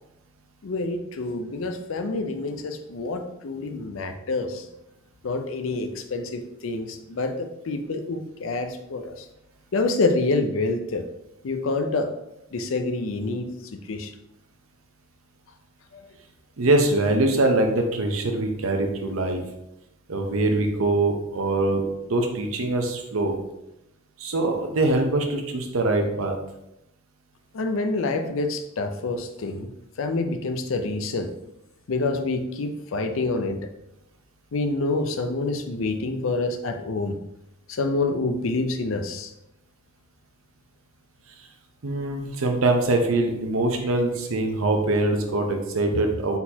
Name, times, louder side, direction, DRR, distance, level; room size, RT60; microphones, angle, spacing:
voice 1, 0.6-4.7 5.2-9.2 9.7-11.0 11.4-12.1 12.5-13.5 13.9-14.1 15.9-16.0 27.5-29.7 30.0-31.3 31.9-33.6 34.5-37.2 37.7-39.3, left 3 dB, 70° left, 7 dB, 0.5 m, -27 dB
voice 2, 16.6-19.4 20.1-21.8 22.1-23.4 24.2-26.3 41.8-46.4, right 2 dB, 80° right, 4 dB, 0.7 m, -23 dB
4.2 x 4.0 x 2.8 m, 0.87 s
head